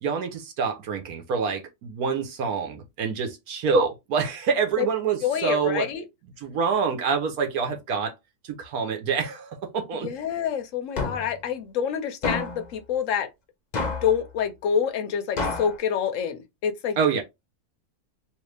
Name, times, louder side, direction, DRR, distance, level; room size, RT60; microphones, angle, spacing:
voice 1, 0.0-5.9 6.4-8.1 8.4-10.1 17.0-17.2, right 5 dB, 70° right, 1.2 m, -26 dB
voice 2, 5.2-6.0 10.0-13.3 14.0-17.0, left 8 dB, 65° left, 0.9 m, -27 dB
Foley man hitting a car bonnet various, 11.0-11.4 12.2-12.7 13.7-14.2 15.4-15.8, left 3 dB, 40° left, 0.6 m, -29 dB
3.1 x 2.7 x 3.2 m
omnidirectional pair, 1.6 m